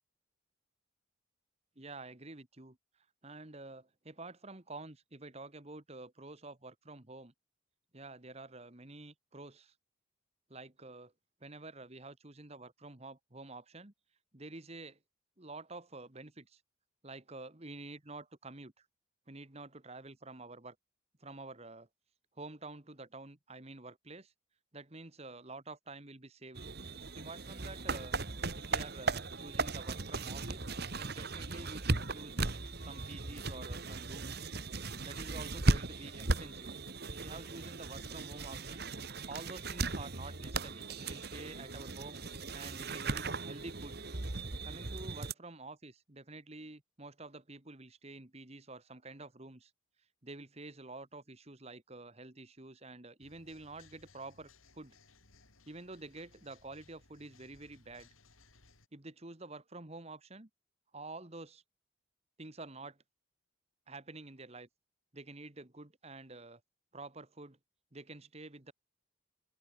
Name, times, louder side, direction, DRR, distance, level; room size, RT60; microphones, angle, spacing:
voice 1, 1.7-2.8 3.2-7.3 7.9-9.7 10.5-11.1 11.4-13.9 14.3-15.0 15.4-16.6 17.0-18.8 19.3-20.7 21.2-21.9 22.3-24.3 24.7-26.6 27.2-28.2 28.6-30.7 31.0-32.4 32.7-34.4 35.0-36.8 37.1-38.9 39.3-42.2 42.5-44.2 44.6-49.7 50.2-55.0 55.7-58.1 58.9-60.5 60.9-61.6 62.4-63.0 63.9-64.7 65.1-66.6 66.9-67.6 67.9-68.7, right 2 dB, 30° right, 1.6 m, -49 dB
sound 1, 26.5-45.3, right 3 dB, 50° right, 1.7 m, -37 dB
sound 2, 53.2-58.9, left 3 dB, 90° left, 6.4 m, -63 dB
open air
head